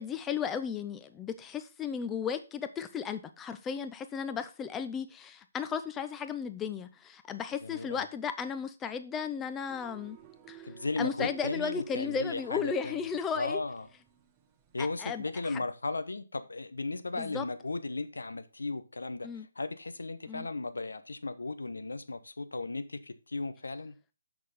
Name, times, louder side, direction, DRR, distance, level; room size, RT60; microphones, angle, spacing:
voice 1, 0.0-10.2 10.5-10.6 11.0-13.6 14.8-15.6 17.1-17.4 19.2-19.5 20.3-20.5, left 7 dB, 15° left, 0.7 m, -35 dB
voice 2, 7.6-8.0 10.6-13.1 13.3-13.9 14.7-23.9, left 3 dB, 75° left, 0.9 m, -36 dB
sound 1, 9.7-14.9, right 12 dB, 25° right, 1.0 m, -53 dB
6.5 x 6.1 x 5.1 m
figure-of-eight pair, 140°, 0 cm